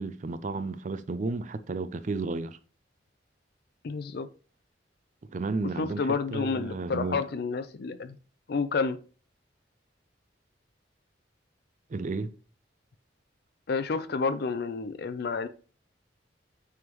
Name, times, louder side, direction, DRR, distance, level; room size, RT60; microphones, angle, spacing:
voice 1, 0.0-2.6 5.3-7.2 11.9-12.3, right 3 dB, 40° right, 0.4 m, -33 dB
voice 2, 3.8-4.3 5.6-8.2 8.5-9.0 13.7-15.5, left 4 dB, 55° left, 0.4 m, -30 dB
9.4 x 3.5 x 2.9 m
head